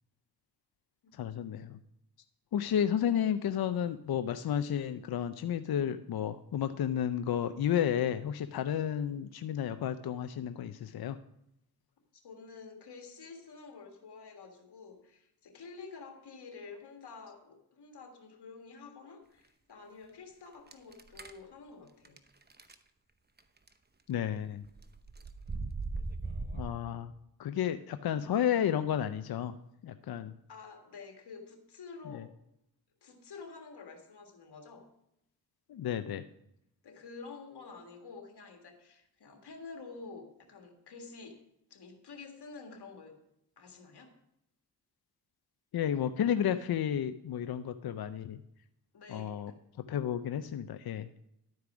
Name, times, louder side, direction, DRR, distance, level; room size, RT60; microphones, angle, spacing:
voice 1, 1.2-1.8 2.5-11.2 24.1-24.6 26.5-27.1 27.4-29.5 29.8-30.3 32.1-32.2 35.7-36.2 45.7-48.4 49.1-49.5 49.9-51.1, left 9 dB, 70° left, 10 dB, 0.6 m, -32 dB
voice 2, 12.1-22.2 30.5-32.3 33.0-34.8 36.8-41.4 41.7-43.1 43.6-44.1 48.9-49.5, left 4 dB, 85° left, 3 dB, 1.7 m, -49 dB
sound 1, 20.7-21.4 22.0-22.2 22.5-22.7 23.4-23.7 24.6-26.7, right 3 dB, 25° right, 0.9 m, -38 dB
12.0 x 4.7 x 6.0 m, 0.80 s
cardioid pair, 45°, 39 cm